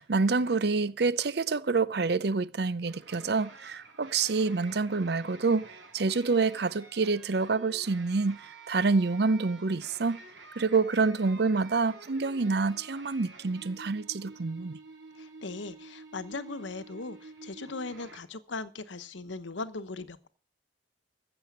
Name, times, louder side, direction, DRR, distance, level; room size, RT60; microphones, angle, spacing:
voice 1, 0.0-5.6 5.9-10.2 10.6-14.8, right 4 dB, 60° right, 0.6 m, -27 dB
sound 1, 2.9-18.2, right 3 dB, 90° right, 3.7 m, -49 dB
voice 2, 15.2-20.3, left 3 dB, 80° left, 1.0 m, -39 dB
15.0 x 7.0 x 7.2 m
head